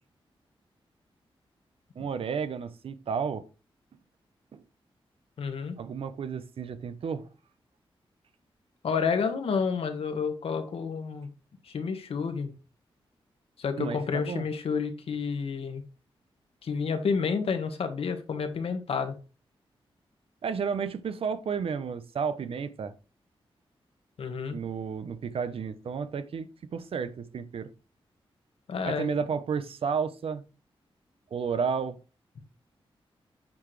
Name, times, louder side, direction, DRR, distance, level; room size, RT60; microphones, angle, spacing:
voice 1, 2.0-3.5 4.5-4.6 5.8-7.2 13.8-14.4 20.4-22.9 24.5-27.7 28.8-30.4 31.3-32.0, right 6 dB, 75° right, 0.9 m, -32 dB
voice 2, 5.4-5.8 8.8-11.3 11.6-12.5 13.6-15.8 16.6-19.1 24.2-24.6 28.7-29.2, left 5 dB, 75° left, 1.6 m, -30 dB
8.6 x 6.0 x 3.3 m
wide cardioid pair, 115°, 10 cm